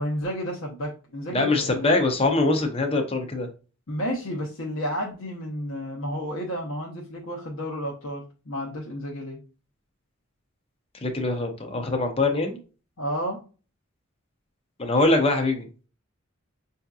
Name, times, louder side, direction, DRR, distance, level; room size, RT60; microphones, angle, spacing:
voice 1, 0.0-2.0 3.9-9.4 13.0-13.4, equal, 65° left, -3 dB, 0.9 m, -31 dB
voice 2, 1.3-3.5 10.9-12.6 14.8-15.7, left 2 dB, 25° left, 4 dB, 0.7 m, -23 dB
5.6 x 2.7 x 2.3 m, 0.36 s
head